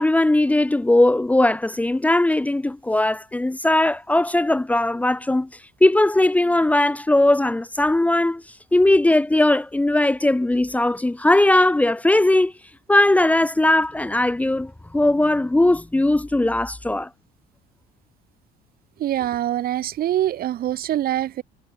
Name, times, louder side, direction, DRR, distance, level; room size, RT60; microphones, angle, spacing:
voice 1, 0.0-5.5 5.8-8.4 8.7-12.5 12.9-17.1, left 1 dB, 5° left, 1.2 m, -19 dB
voice 2, 19.0-21.4, right 12 dB, 50° right, 2.0 m, -24 dB
cardioid pair, 145°, 19 cm